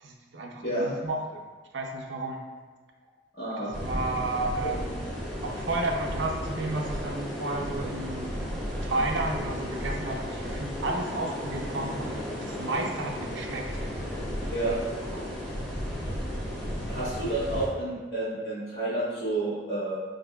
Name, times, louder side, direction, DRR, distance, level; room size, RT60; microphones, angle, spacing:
voice 1, 0.0-1.4 1.7-2.4 3.6-4.9 5.4-8.3 8.8-13.6 14.6-15.3, right 2 dB, 75° right, 1 dB, 0.5 m, -32 dB
voice 2, 3.3-3.8 4.6-4.7 14.5-14.8 16.9-19.9, right 2 dB, 50° left, -14 dB, 1.2 m, -30 dB
sound 1, 3.7-17.7, equal, 5° left, 0.5 m, -34 dB
4.3 x 2.6 x 2.2 m, 1.4 s
head